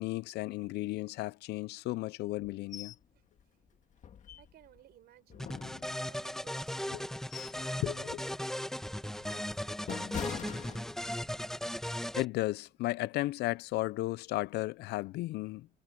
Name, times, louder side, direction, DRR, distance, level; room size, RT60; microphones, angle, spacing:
voice 1, 0.0-2.9 6.9-7.0 7.6-8.2 12.1-15.7, left 18 dB, 75° left, 0.5 m, -34 dB
sound 1, 2.7-3.0 3.4-3.5 4.0-4.8 5.3-6.3 6.9-7.7 8.1-8.3 8.9-11.3 11.7-11.9, left 8 dB, 45° left, 1.8 m, -44 dB
voice 2, 3.1-3.6 4.4-5.5 5.9-7.2 7.9-8.1 9.0-10.9, right 13 dB, 70° right, 6.2 m, -60 dB
sound 2, 5.4-12.2, equal, 5° left, 1.2 m, -37 dB
cardioid pair, 110°, 17 cm